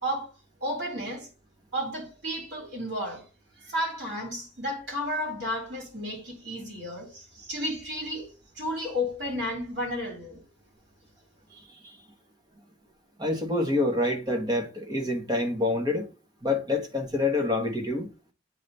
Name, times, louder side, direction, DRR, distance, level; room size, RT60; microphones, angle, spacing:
voice 1, 0.0-0.3 0.6-1.3 1.7-3.2 3.6-8.3 8.6-10.4, equal, 60° right, 3.1 m, -32 dB
voice 2, 11.5-11.9 13.2-16.1 16.4-18.1, left 2 dB, 20° right, 1.2 m, -27 dB
8.3 x 3.4 x 4.0 m
head